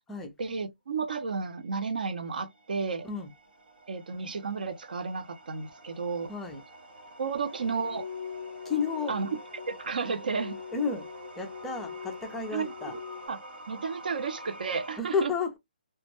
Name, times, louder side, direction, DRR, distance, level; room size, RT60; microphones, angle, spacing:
voice 1, 0.4-3.1 3.9-6.3 7.2-8.1 9.1-10.6 12.5-12.7 13.3-13.4 13.7-15.3, right 5 dB, 60° right, 0.5 m, -32 dB
sound 1, 1.8-15.0, right 1 dB, 85° right, 0.8 m, -48 dB
voice 2, 6.3-6.6 8.6-9.2 10.7-11.1 11.4-12.9 15.0-15.6, left 5 dB, 5° left, 0.3 m, -31 dB
sound 2, 7.5-13.3, left 7 dB, 70° left, 0.4 m, -43 dB
2.2 x 2.1 x 2.8 m
hypercardioid pair, 160°, 5 cm